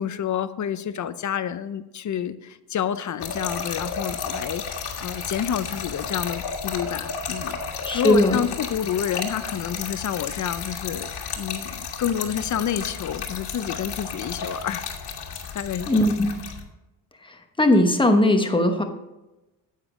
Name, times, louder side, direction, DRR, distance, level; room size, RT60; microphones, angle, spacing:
voice 1, 0.0-14.9 15.5-16.0, left 9 dB, 45° left, 13 dB, 0.6 m, -29 dB
Trickle dribble / Fill (with liquid), 3.2-16.6, left 6 dB, 65° left, 1.7 m, -32 dB
voice 2, 7.8-8.4 15.9-16.3 17.6-18.8, left 1 dB, 10° left, 5 dB, 1.0 m, -19 dB
9.7 x 8.3 x 3.7 m, 1.0 s
cardioid pair, 125°, 43 cm